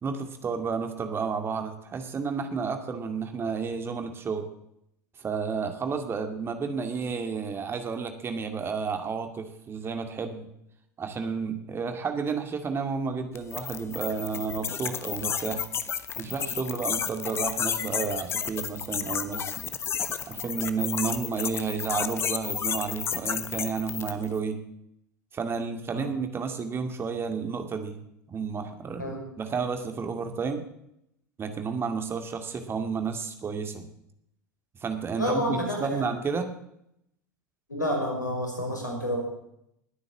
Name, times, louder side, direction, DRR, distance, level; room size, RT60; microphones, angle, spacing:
voice 1, 0.0-4.5 5.2-10.5 11.0-15.6 16.2-19.6 20.3-24.6 25.3-28.0 28.3-30.6 31.4-33.9 34.8-36.5, right 5 dB, 25° right, 7 dB, 2.3 m, -31 dB
sound 1, 13.3-24.3, left 8 dB, 25° left, 1.2 m, -32 dB
voice 2, 35.2-36.1 37.7-39.2, equal, 85° left, 1 dB, 5.5 m, -29 dB
20.5 x 9.5 x 7.4 m, 0.77 s
figure-of-eight pair, 80°, 10 cm